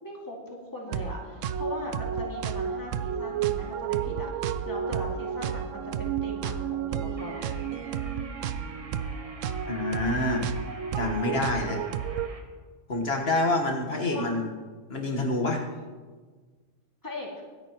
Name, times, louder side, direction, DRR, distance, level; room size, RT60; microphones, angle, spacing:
voice 1, 0.0-7.7 14.1-14.3 17.0-17.3, left 1 dB, 15° left, -2 dB, 2.3 m, -39 dB
sound 1, 0.9-12.3, right 8 dB, 85° right, 0.9 m, -31 dB
sound 2, 7.2-12.4, right 2 dB, 30° right, 1.2 m, -48 dB
voice 2, 9.7-10.5 10.9-11.8 12.9-14.5 14.9-15.6, left 2 dB, 55° left, 2 dB, 1.7 m, -27 dB
24.5 x 8.8 x 3.0 m, 1.4 s
omnidirectional pair, 1.3 m